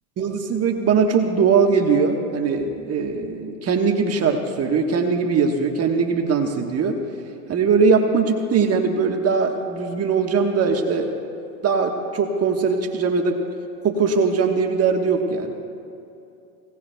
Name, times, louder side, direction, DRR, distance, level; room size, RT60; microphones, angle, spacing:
voice 1, 0.2-7.0 7.5-11.1 11.6-13.4 13.8-15.5, right 5 dB, 30° right, 3 dB, 1.3 m, -20 dB
25.0 x 18.0 x 2.3 m, 2.7 s
hypercardioid pair, 100°, 45 cm